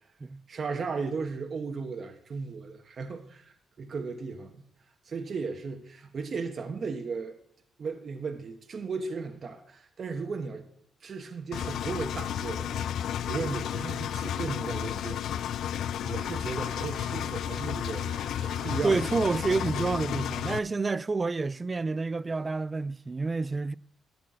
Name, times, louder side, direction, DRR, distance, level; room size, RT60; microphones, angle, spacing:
voice 1, 0.5-4.7 5.0-7.3 7.8-10.6 11.0-12.9 13.3-15.5 16.0-18.1 18.6-19.4, right 4 dB, 45° right, 1.2 m, -36 dB
Engine, 11.5-20.6, left 10 dB, 75° left, 0.3 m, -32 dB
sound 1, 16.5-20.3, right 9 dB, 75° right, 0.7 m, -51 dB
voice 2, 18.8-23.7, right 3 dB, 25° right, 0.4 m, -29 dB
12.5 x 4.3 x 7.6 m
cardioid pair, 90°, 0 cm